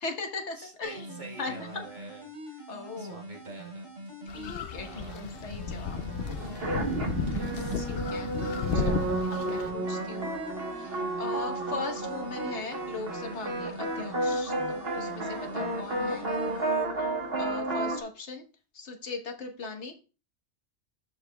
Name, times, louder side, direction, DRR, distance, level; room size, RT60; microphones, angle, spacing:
voice 1, 0.0-1.8 2.7-3.2 4.3-6.0 7.8-8.3 8.7-10.3 10.7-16.3 17.0-17.1 17.4-18.4 18.7-19.9, left 4 dB, 80° left, 4 dB, 1.6 m, -39 dB
voice 2, 0.6-2.7 3.0-3.9 4.8-5.3 6.3-6.5 7.3-7.9 8.5-9.0 9.4-9.8 15.5-15.6, right 2 dB, 40° right, 0 dB, 1.9 m, -47 dB
sound 1, 0.8-16.8, right 1 dB, 80° right, 4.8 m, -44 dB
sound 2, 4.3-9.7, left 6 dB, 60° left, 0.8 m, -34 dB
sound 3, 5.9-18.0, right 2 dB, 60° right, 1.6 m, -32 dB
12.5 x 4.8 x 2.3 m, 0.33 s
omnidirectional pair, 1.2 m